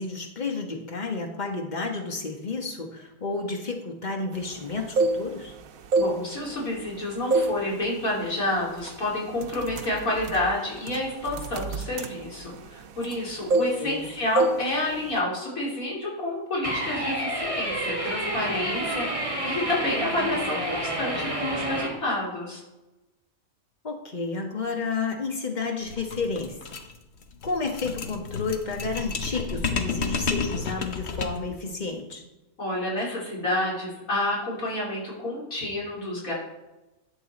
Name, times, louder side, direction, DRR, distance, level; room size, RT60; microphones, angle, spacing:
voice 1, 0.0-5.5 13.8-14.1 23.8-26.6 27.4-32.2, left 4 dB, 35° left, 3 dB, 1.3 m, -31 dB
sound 1, 4.7-5.5 5.8-6.9 7.3-7.6 8.0-8.3 8.9-9.0 9.4-13.2 13.5-14.1 14.4-14.6 14.9-15.2, right 2 dB, 85° right, 1.2 m, -26 dB
voice 2, 6.0-22.6 32.6-36.3, left 1 dB, 85° left, -4 dB, 3.4 m, -29 dB
sound 2, 16.6-21.9, right 1 dB, 25° right, 2.2 m, -29 dB
sound 3, 25.8-31.5, left 5 dB, 55° left, 1.1 m, -31 dB
11.0 x 7.1 x 4.1 m, 1.0 s
omnidirectional pair, 1.4 m